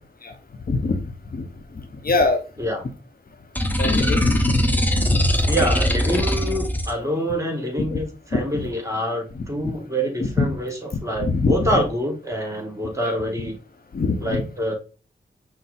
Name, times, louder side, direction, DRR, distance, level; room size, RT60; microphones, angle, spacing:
voice 1, 0.7-1.0 1.3-1.4 2.0-2.4 3.8-4.6 5.0-5.2 7.8-8.0 8.3-8.7 9.3-9.4 10.4-10.5 11.2-11.8 13.1-13.2 13.9-14.4, left 3 dB, 50° left, 6 dB, 0.8 m, -23 dB
sound 1, 3.5-6.9, equal, 10° left, 0.9 m, -21 dB
voice 2, 5.5-13.6 14.2-14.7, equal, 15° right, 2 dB, 1.8 m, -26 dB
5.6 x 2.0 x 4.1 m, 0.34 s
cardioid pair, 40°, 19 cm